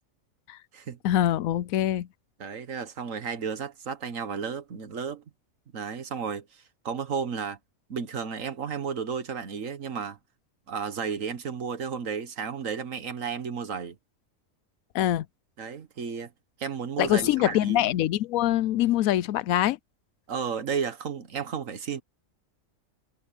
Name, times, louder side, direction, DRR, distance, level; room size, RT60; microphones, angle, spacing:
voice 1, 1.0-2.1 14.9-15.3 17.0-19.8, left 13 dB, 90° left, 1.0 m, -24 dB
voice 2, 2.4-5.2 5.7-7.6 7.9-10.2 10.7-14.0 15.6-16.3 16.6-17.9 20.3-22.0, right 6 dB, 70° right, 1.7 m, -33 dB
omnidirectional pair, 1.4 m